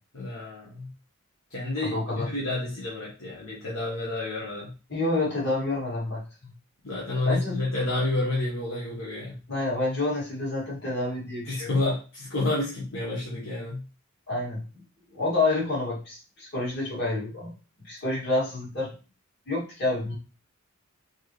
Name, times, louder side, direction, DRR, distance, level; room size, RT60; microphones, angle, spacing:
voice 1, 0.1-0.9 1.5-4.7 6.8-9.4 11.5-13.8, left 2 dB, 70° left, -5 dB, 1.2 m, -30 dB
voice 2, 1.8-2.3 4.9-6.5 7.2-7.6 9.5-11.9 14.3-14.6 15.1-17.5 17.8-18.9 19.5-20.1, left 2 dB, 50° left, -4 dB, 2.4 m, -28 dB
4.5 x 3.1 x 3.1 m, 0.33 s
head